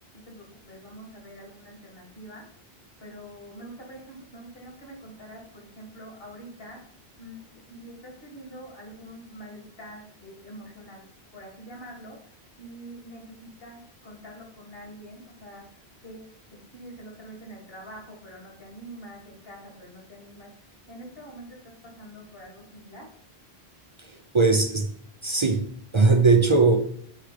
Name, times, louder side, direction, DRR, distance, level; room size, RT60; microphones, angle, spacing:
voice 1, 0.1-2.5 3.0-6.8 7.2-23.1, right 1 dB, 65° left, 0 dB, 2.1 m, -45 dB
voice 2, 24.0-24.9 25.2-25.7 25.9-26.8, right 3 dB, 35° right, 6 dB, 0.5 m, -20 dB
6.6 x 4.6 x 4.9 m, 0.64 s
omnidirectional pair, 1.1 m